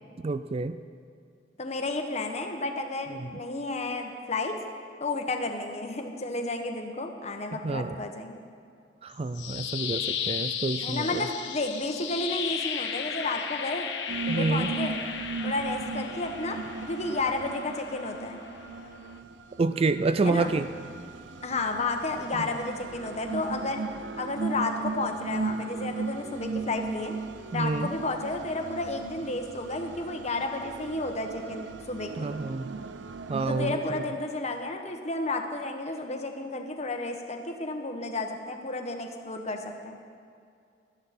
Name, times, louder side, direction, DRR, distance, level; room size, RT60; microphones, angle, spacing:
voice 1, 0.2-0.8 3.2-3.4 7.6-8.0 9.0-11.3 14.3-14.7 19.6-20.7 22.4-22.5 27.5-27.9 32.2-32.7 33.3-34.0, right 3 dB, 35° right, 12 dB, 0.4 m, -28 dB
voice 2, 1.6-4.6 5.0-8.4 10.8-13.9 14.3-15.0 15.4-18.4 20.2-20.5 21.4-23.9 24.2-27.1 27.5-32.3 33.5-40.0, left 2 dB, 40° left, 4 dB, 1.3 m, -32 dB
sound 1, 9.1-19.2, left 7 dB, 80° left, 1.0 m, -35 dB
sound 2, 14.1-33.8, right 4 dB, 90° right, 0.6 m, -37 dB
17.5 x 13.0 x 4.3 m, 2.3 s
head